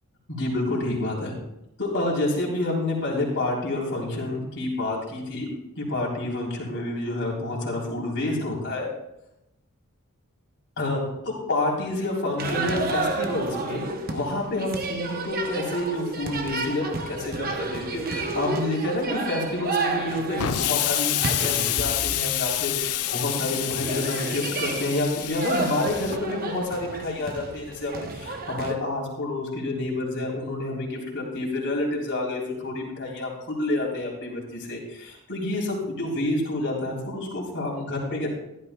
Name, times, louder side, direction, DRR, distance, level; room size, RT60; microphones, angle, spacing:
voice 1, 0.3-1.3 1.8-5.5 5.8-8.9 10.8-13.8 14.1-38.3, left 2 dB, 55° left, -3 dB, 3.7 m, -28 dB
sound 1, 12.4-28.7, right 3 dB, 40° right, 0.9 m, -32 dB
Explosion, 20.4-26.2, left 13 dB, 75° left, 0.5 m, -28 dB
15.0 x 12.0 x 2.3 m, 0.88 s
head